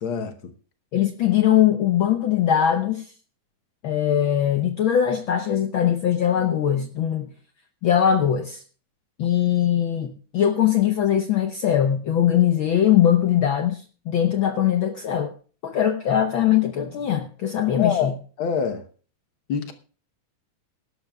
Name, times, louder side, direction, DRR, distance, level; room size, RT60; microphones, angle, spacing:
voice 1, 0.0-0.3 17.8-18.1 18.4-18.8 19.5-19.7, left 7 dB, 60° left, 1.4 m, -24 dB
voice 2, 0.9-3.1 3.8-7.3 7.8-8.6 9.2-15.3 15.6-18.1, left 10 dB, 90° left, 1.1 m, -21 dB
21.0 x 12.0 x 2.3 m
omnidirectional pair, 3.5 m